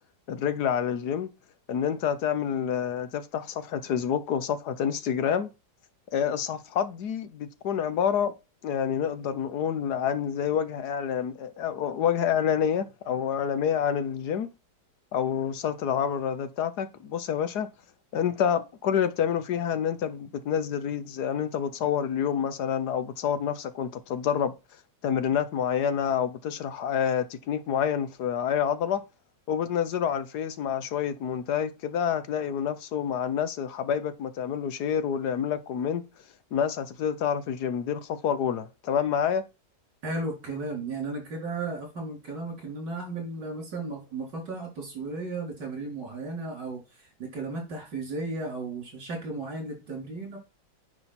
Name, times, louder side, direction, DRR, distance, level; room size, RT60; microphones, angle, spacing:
voice 1, 0.3-1.3 1.7-5.5 6.1-8.3 8.6-14.5 15.1-17.7 18.1-24.5 25.0-29.0 29.5-36.0 36.5-39.4, left 8 dB, 65° left, 1.4 m, -28 dB
voice 2, 40.0-50.4, right 3 dB, 70° right, 4.9 m, -35 dB
9.8 x 5.2 x 4.3 m
omnidirectional pair, 1.9 m